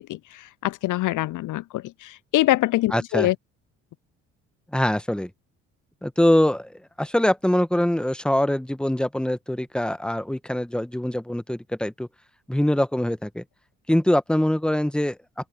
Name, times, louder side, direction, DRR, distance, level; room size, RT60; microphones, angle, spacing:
voice 1, 0.0-3.4, left 16 dB, 55° left, 0.6 m, -24 dB
voice 2, 2.9-3.3 4.7-5.3 6.0-6.7 7.0-12.1 12.5-13.4 13.9-15.2, left 1 dB, ahead, 1.4 m, -23 dB
hypercardioid pair, 55°, 37 cm